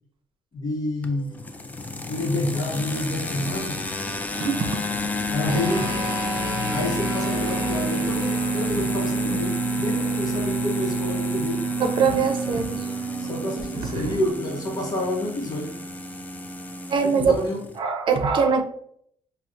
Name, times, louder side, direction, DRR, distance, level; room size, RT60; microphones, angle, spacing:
voice 1, 0.5-1.4 2.1-3.8 5.3-5.9 6.7-11.6 13.2-15.7 17.0-17.6, left 1 dB, 40° left, -1 dB, 0.8 m, -28 dB
sound 1, 1.0-17.8, left 3 dB, 15° left, 0.4 m, -32 dB
voice 2, 4.3-4.7 11.8-12.9 14.0-14.1 16.9-17.4 17.8-18.6, right 5 dB, 50° right, 5 dB, 0.6 m, -22 dB
sound 2, 5.5-15.1, right 3 dB, 30° right, 1.2 m, -28 dB
5.6 x 2.0 x 2.5 m, 0.66 s
cardioid pair, 115°, 10 cm